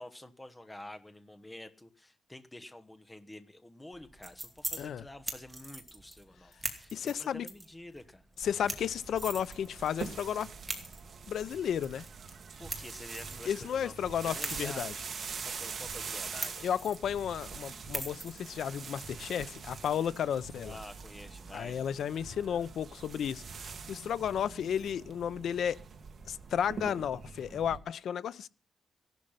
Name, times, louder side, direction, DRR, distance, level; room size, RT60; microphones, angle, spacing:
voice 1, 0.0-8.2 12.6-13.9 14.2-15.0 15.5-16.7 20.6-22.0, left 1 dB, 10° left, 1.2 m, -48 dB
sound 1, 3.9-20.8, right 2 dB, 10° right, 2.5 m, -45 dB
voice 2, 6.9-7.5 8.4-10.5 11.3-12.0 13.5-14.9 16.6-20.8 21.5-25.8 26.3-28.5, left 8 dB, 70° left, 0.7 m, -33 dB
sound 2, 8.4-27.8, right 5 dB, 45° right, 2.2 m, -44 dB
16.0 x 12.0 x 5.8 m
wide cardioid pair, 150°, 0 cm